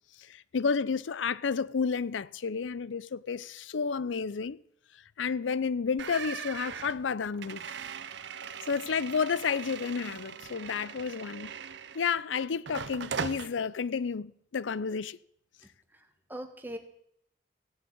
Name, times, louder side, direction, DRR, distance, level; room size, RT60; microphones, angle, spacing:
voice 1, 0.2-4.6 5.2-7.6 8.6-11.5 11.9-15.2, left 5 dB, 90° left, 0.5 m, -31 dB
sound 1, 6.0-12.2 12.7-13.5, right 6 dB, 70° right, 0.6 m, -40 dB
voice 2, 15.6-16.8, equal, 10° right, 1.5 m, -42 dB
16.0 x 7.3 x 8.6 m
head